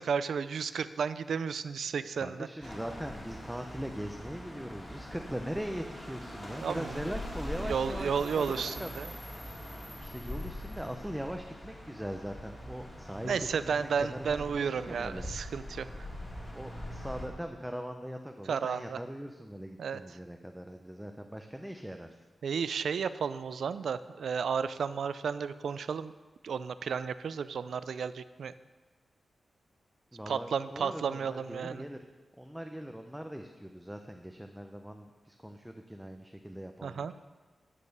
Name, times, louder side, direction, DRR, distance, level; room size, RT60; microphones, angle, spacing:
voice 1, 0.0-2.5 6.6-7.0 7.6-9.1 13.2-16.1 18.5-19.0 19.8-20.2 22.4-26.1 26.4-28.5 30.3-31.8 36.8-37.1, right 6 dB, 80° right, 14 dB, 0.4 m, -33 dB
voice 2, 2.2-8.9 10.0-15.3 16.5-22.1 30.1-32.0 32.4-37.1, equal, 5° right, 4 dB, 0.5 m, -41 dB
sound 1, 2.6-17.3, left 1 dB, 15° left, 2.1 m, -42 dB
10.0 x 6.5 x 6.7 m, 1.3 s
wide cardioid pair, 160°, 0 cm